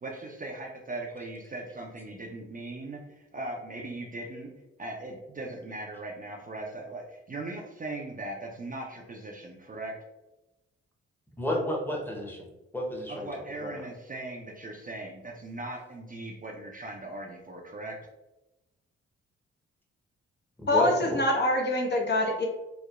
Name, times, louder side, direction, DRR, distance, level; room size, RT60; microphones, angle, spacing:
voice 1, 0.0-4.5 4.8-10.0 13.1-18.0, right 2 dB, 30° right, 0 dB, 0.5 m, -39 dB
voice 2, 11.4-13.9 20.6-21.1, equal, 5° left, -2 dB, 0.8 m, -32 dB
voice 3, 20.7-22.5, left 1 dB, 35° left, 0 dB, 0.6 m, -25 dB
3.0 x 2.0 x 2.4 m, 0.99 s
hypercardioid pair, 45°, 29 cm